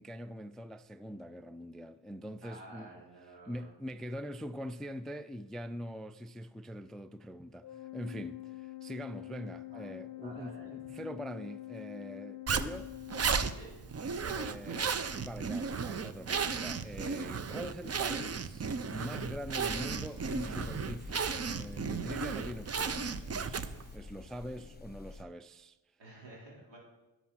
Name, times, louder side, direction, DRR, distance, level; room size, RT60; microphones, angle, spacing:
voice 1, 0.0-2.9 3.5-12.9 14.2-25.8, equal, ahead, 0.3 m, -43 dB
voice 2, 2.4-3.7 9.6-9.9 10.2-10.7 13.5-13.7 26.0-26.8, right 2 dB, 75° right, 4.3 m, -51 dB
Organ, 7.6-14.2, left 18 dB, 50° left, 0.6 m, -46 dB
Zipper (clothing), 12.5-23.9, right 5 dB, 35° right, 0.7 m, -34 dB
sound 1, 19.2-25.2, left 3 dB, 20° left, 1.0 m, -47 dB
11.0 x 6.2 x 5.9 m
cardioid pair, 55°, 44 cm